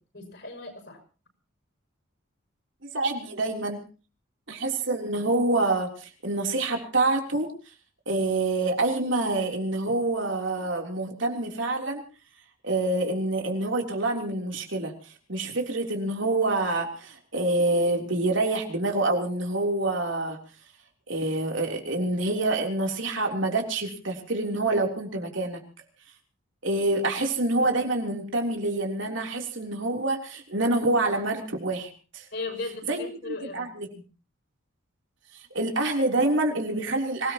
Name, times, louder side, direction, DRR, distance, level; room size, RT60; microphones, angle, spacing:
voice 1, 0.1-1.0 32.3-33.7, left 3 dB, 55° left, 5 dB, 5.7 m, -36 dB
voice 2, 2.8-3.8 4.5-7.7 8.1-12.0 12.6-20.4 21.1-25.6 26.6-32.3 32.9-33.9 35.3-37.3, right 2 dB, 65° right, 2 dB, 3.5 m, -27 dB
25.5 x 18.0 x 3.0 m, 0.36 s
head